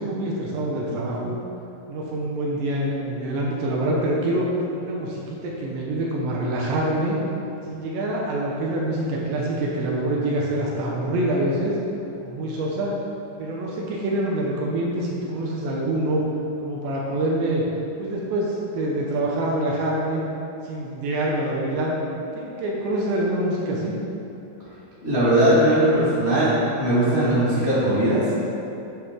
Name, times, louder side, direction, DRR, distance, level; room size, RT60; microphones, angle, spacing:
voice 1, 0.0-1.3 1.9-4.5 4.8-7.2 7.7-11.7 12.2-12.9 13.4-16.2 16.6-17.6 18.0-20.2 20.6-22.0 22.3-23.9, right 1 dB, 70° right, -3 dB, 3.0 m, -25 dB
voice 2, 25.0-26.5 26.8-28.4, right 1 dB, 50° left, -12 dB, 0.7 m, -19 dB
11.0 x 8.9 x 3.7 m, 2.8 s
omnidirectional pair, 5.9 m